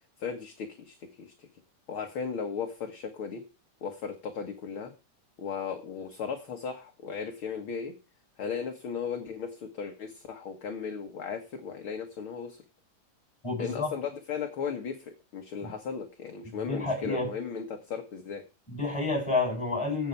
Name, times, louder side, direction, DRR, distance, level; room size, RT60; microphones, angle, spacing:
voice 1, 0.2-1.5 1.9-3.4 3.8-4.9 5.4-7.9 8.4-12.6 13.6-18.4, left 6 dB, 50° left, 4 dB, 1.9 m, -36 dB
voice 2, 13.4-13.9 15.6-15.7 16.7-17.3 18.7-20.1, left 3 dB, 10° left, 1 dB, 7.5 m, -29 dB
14.0 x 8.5 x 4.6 m, 0.34 s
omnidirectional pair, 3.7 m